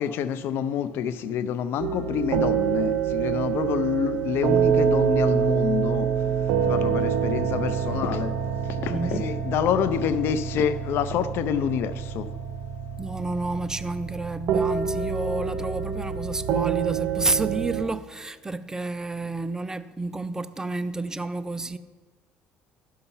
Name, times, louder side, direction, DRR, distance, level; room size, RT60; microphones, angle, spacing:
voice 1, 0.0-6.3 6.6-8.4 8.8-12.3, left 8 dB, 65° left, 0.6 m, -27 dB
sound 1, 1.8-17.8, right 7 dB, 70° right, 0.8 m, -26 dB
voice 2, 8.9-9.3 13.0-21.8, right 2 dB, 15° right, 0.4 m, -30 dB
12.5 x 5.6 x 5.5 m
cardioid pair, 100°, 4 cm